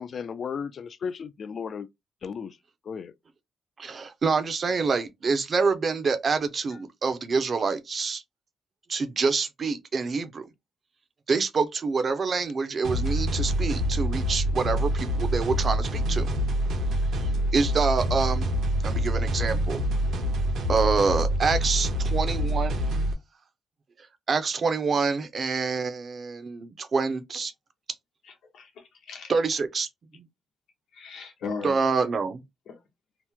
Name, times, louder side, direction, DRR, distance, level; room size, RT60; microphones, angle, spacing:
voice 1, 0.0-1.9 2.2-2.6 2.9-3.1, left 6 dB, 45° left, 0.3 m, -34 dB
voice 2, 3.8-8.2 8.9-10.4 11.3-16.4 17.0-18.5 18.8-19.8 20.7-22.8 24.3-27.5 29.3-29.9 30.1-30.2 31.6-32.4, right 4 dB, 35° right, 0.5 m, -26 dB
sound 1, 12.8-23.1, equal, 75° right, 0.8 m, -26 dB
voice 3, 28.2-29.3 30.9-31.8 32.7-32.8, left 5 dB, 75° left, 0.9 m, -38 dB
2.9 x 2.0 x 3.4 m
wide cardioid pair, 155°, 0 cm